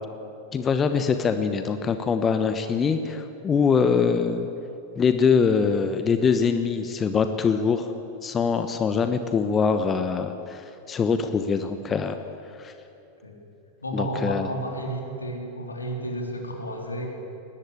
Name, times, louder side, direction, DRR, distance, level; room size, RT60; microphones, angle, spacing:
voice 1, 0.5-4.5 5.0-7.9 8.2-12.2 12.6-12.7 13.9-14.5, left 5 dB, 20° left, 9 dB, 1.1 m, -23 dB
voice 2, 13.8-17.1, right 1 dB, 80° left, 1 dB, 3.9 m, -31 dB
21.5 x 18.5 x 8.6 m, 2.8 s
figure-of-eight pair, 90°, 0 cm